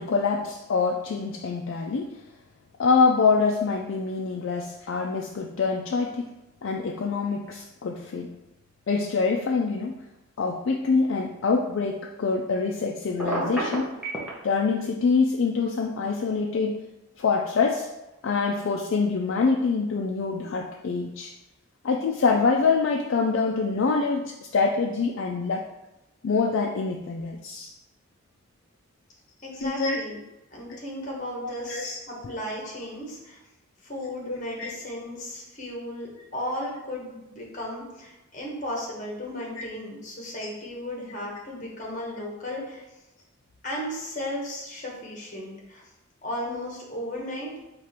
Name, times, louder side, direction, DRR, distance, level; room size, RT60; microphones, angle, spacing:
voice 1, 0.0-2.2 2.8-6.3 6.6-8.3 8.9-10.0 10.4-13.9 14.4-16.7 17.2-17.9 18.2-21.3 21.8-25.6 26.2-27.7 29.6-30.0 30.7-30.8 31.4-32.0 32.2-32.3 34.3-34.7 39.6-39.7, left 4 dB, 65° left, 0 dB, 0.4 m, -25 dB
Telephone, 13.2-14.3, right 1 dB, 5° right, 0.9 m, -27 dB
voice 2, 29.4-30.2 30.5-33.4 33.8-42.8 43.6-45.8 46.2-47.5, left 1 dB, 35° left, -2 dB, 1.2 m, -35 dB
4.8 x 2.5 x 4.3 m, 0.96 s
head